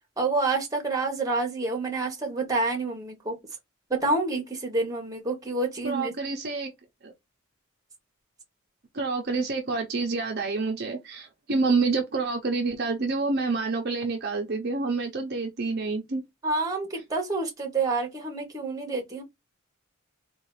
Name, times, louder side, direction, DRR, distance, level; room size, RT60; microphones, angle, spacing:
voice 1, 0.2-3.4 3.9-6.1 16.4-19.2, right 3 dB, 15° right, 1.0 m, -28 dB
voice 2, 5.8-6.7 7.0-7.1 8.9-16.2, right 3 dB, 50° right, 0.7 m, -28 dB
3.8 x 2.4 x 3.0 m
head